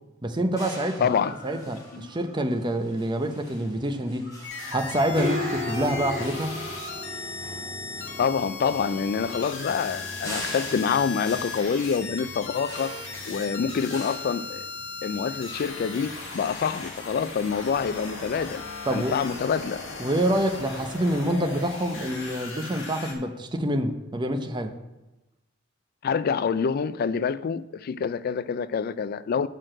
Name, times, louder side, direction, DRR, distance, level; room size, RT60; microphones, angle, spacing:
voice 1, 0.2-1.1 1.4-4.3 4.7-6.6 18.9-19.2 20.0-24.8, right 1 dB, 20° right, 0.6 m, -27 dB
sound 1, 0.6-15.0, left 1 dB, 20° left, 3.2 m, -44 dB
voice 2, 1.0-1.4 1.9-2.1 8.2-13.0 13.3-14.7 15.0-18.6 18.9-19.8 26.0-29.5, left 6 dB, 50° left, 0.3 m, -26 dB
sound 2, 4.4-23.1, left 4 dB, 65° left, 1.8 m, -37 dB
sound 3, 4.7-22.2, left 1 dB, 40° right, 3.6 m, -40 dB
6.7 x 6.1 x 7.5 m
head